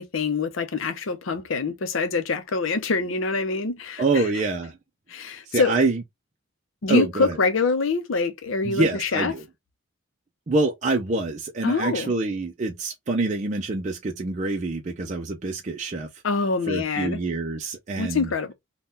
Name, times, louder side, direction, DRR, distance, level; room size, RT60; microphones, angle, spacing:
voice 1, 0.0-4.0 5.1-5.8 6.8-9.3 11.6-12.1 16.2-17.2 18.0-18.5, left 4 dB, 75° left, 0.6 m, -25 dB
voice 2, 4.0-4.8 5.4-6.0 6.9-7.4 8.6-9.4 10.5-16.1 16.7-18.3, right 3 dB, 35° right, 0.4 m, -26 dB
3.6 x 2.2 x 2.6 m
head